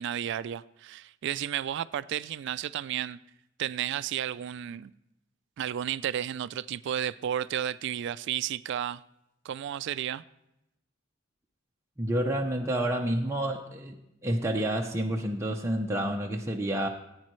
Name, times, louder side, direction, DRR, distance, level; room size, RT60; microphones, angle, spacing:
voice 1, 0.0-3.2 3.6-4.9 5.6-9.0 9.4-10.2, right 10 dB, 60° right, 0.3 m, -32 dB
voice 2, 12.0-14.0 14.2-16.9, right 1 dB, 15° right, 0.6 m, -29 dB
15.0 x 8.9 x 3.1 m
head